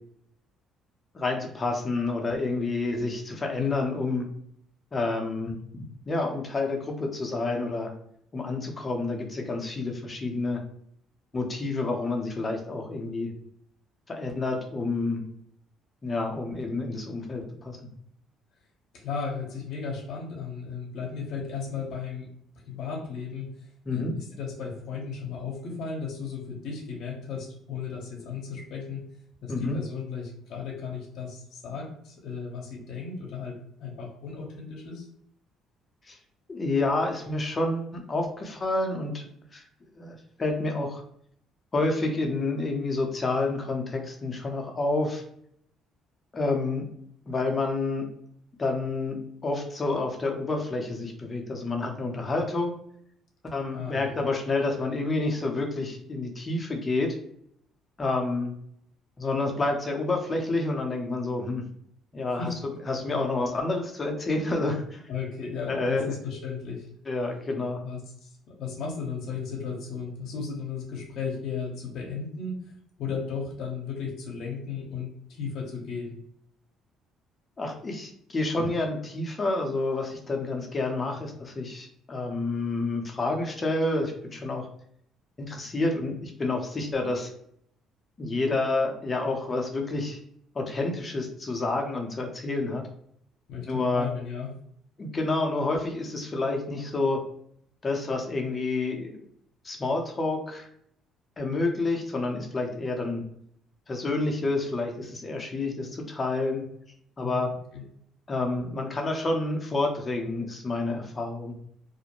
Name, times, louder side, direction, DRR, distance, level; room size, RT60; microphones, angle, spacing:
voice 1, 1.1-4.3 4.9-5.6 6.1-7.9 8.3-10.6 11.3-13.3 14.1-15.2 16.0-17.9 23.9-24.1 29.5-29.8 36.1-36.2 36.5-39.6 40.0-41.0 41.7-45.2 46.3-46.8 47.3-48.1 48.6-52.7 53.4-57.2 58.0-58.5 59.2-61.6 62.1-62.5 62.8-65.0 65.7-66.1 67.1-67.8 77.6-84.7 85.4-87.3 88.2-90.2 90.5-92.8 93.7-94.1 95.0-97.2 97.8-99.2 99.6-100.7 101.4-103.2 103.9-106.6 107.2-107.5 108.3-111.6, left 2 dB, 30° left, 2 dB, 0.6 m, -29 dB
voice 2, 3.6-3.9 18.9-22.3 22.7-23.5 23.9-29.1 29.4-35.1 53.7-54.3 62.4-62.5 65.1-66.9 67.8-72.5 73.0-76.1 93.5-94.5 107.2-107.5 107.7-107.8, left 5 dB, 70° left, 1 dB, 0.7 m, -35 dB
2.5 x 2.1 x 2.9 m, 0.70 s
cardioid pair, 100°, 0 cm